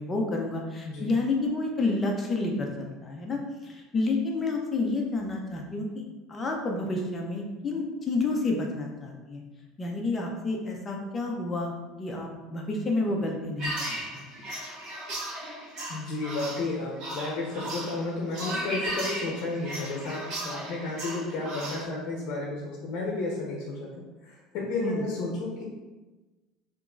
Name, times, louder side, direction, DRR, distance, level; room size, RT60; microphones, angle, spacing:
voice 1, 0.0-5.9 6.3-9.4 9.8-11.7 12.0-14.2 24.8-25.0, left 3 dB, 20° left, 1 dB, 0.6 m, -29 dB
sound 1, 13.6-21.8, right 1 dB, 45° right, 1.3 m, -36 dB
voice 2, 15.9-23.9 24.2-25.6, left 2 dB, 55° left, -2 dB, 0.8 m, -32 dB
3.6 x 3.0 x 3.7 m, 1.2 s
cardioid pair, 150°, 0 cm